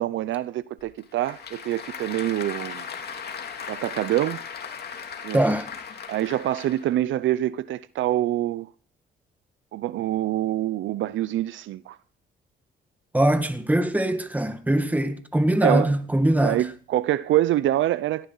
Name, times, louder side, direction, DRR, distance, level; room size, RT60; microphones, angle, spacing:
voice 1, 0.0-2.8 3.7-4.4 5.2-5.4 6.1-8.7 9.7-12.0 15.6-15.9 16.4-18.3, right 13 dB, 75° right, 0.6 m, -25 dB
Applause / Crowd, 0.8-7.0, left 6 dB, 55° left, 2.7 m, -37 dB
voice 2, 5.3-5.7 13.1-16.6, right 1 dB, 10° right, 1.7 m, -22 dB
17.5 x 13.0 x 4.0 m
cardioid pair, 90°, 20 cm